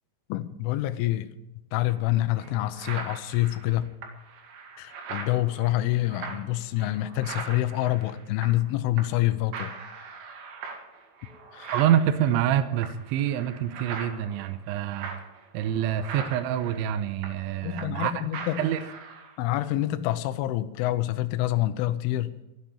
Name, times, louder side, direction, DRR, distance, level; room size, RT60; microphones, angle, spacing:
voice 1, 0.3-1.3 1.7-3.9 4.8-9.7 11.5-11.7 17.6-18.6 19.4-22.4, left 15 dB, 80° left, 3.0 m, -27 dB
sound 1, 1.9-2.0 2.4-8.7 9.0-9.3 9.5-18.1 18.3-19.4, right 5 dB, 65° right, 3.8 m, -41 dB
voice 2, 11.7-15.1 15.5-18.3 18.6-18.8, right 10 dB, 80° right, 2.9 m, -26 dB
13.5 x 9.7 x 8.8 m
omnidirectional pair, 5.9 m